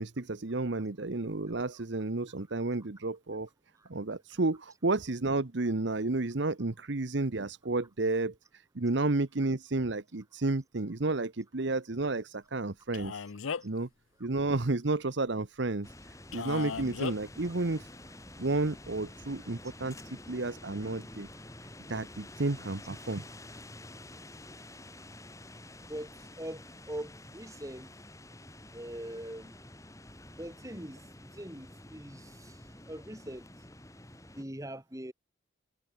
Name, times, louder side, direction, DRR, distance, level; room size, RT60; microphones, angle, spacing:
voice 1, 0.0-3.5 3.9-8.3 8.7-13.1 13.6-13.9 14.2-15.9 16.3-17.8 18.4-19.9 20.3-21.3 21.9-23.2, right 2 dB, 60° right, 1.0 m, -31 dB
Male speech man speaking, 12.9-13.8 16.3-17.2, left 6 dB, 85° left, 0.6 m, -36 dB
sound 1, 15.8-34.4, left 1 dB, 15° left, 5.2 m, -49 dB
voice 2, 26.4-27.9 28.7-29.5 30.4-32.6 32.9-33.4 34.4-35.1, right 1 dB, 15° right, 2.7 m, -42 dB
head